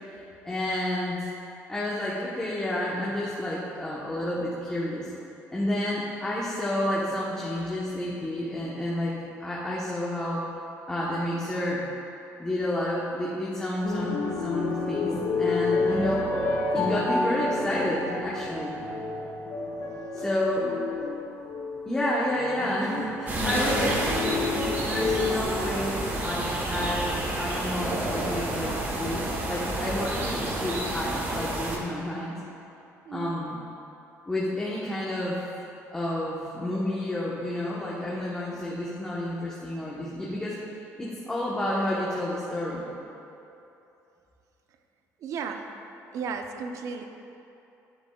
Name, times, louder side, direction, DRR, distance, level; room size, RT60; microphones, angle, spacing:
voice 1, 0.4-1.2 1.7-5.1 5.5-9.1 9.4-10.4 10.9-11.8 12.4-18.8 20.1-20.7 21.9-24.5 24.8-32.3 33.1-33.6 34.3-35.5 35.9-40.5 41.0-42.8, left 1 dB, 10° left, -7 dB, 1.0 m, -30 dB
sound 1, 13.8-25.4, left 3 dB, 75° left, 1.5 m, -29 dB
sound 2, 23.3-31.8, right 1 dB, 35° right, 1.1 m, -30 dB
voice 2, 33.1-33.4 45.2-45.7 46.1-47.0, right 5 dB, 60° right, 5 dB, 0.6 m, -34 dB
11.0 x 6.8 x 2.3 m, 2.8 s
cardioid pair, 120°, 6 cm